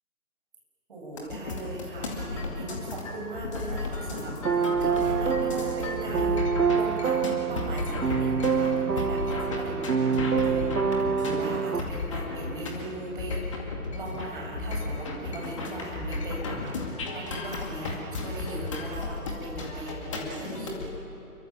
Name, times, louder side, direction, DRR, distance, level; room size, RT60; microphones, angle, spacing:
voice 1, 0.9-20.8, right 1 dB, 35° right, -2 dB, 7.1 m, -39 dB
sound 1, 1.2-20.9, left 2 dB, 20° left, 2.2 m, -34 dB
sound 2, 4.4-11.8, right 6 dB, 80° right, 0.8 m, -26 dB
28.0 x 23.0 x 7.2 m, 2.9 s
figure-of-eight pair, 150°, 46 cm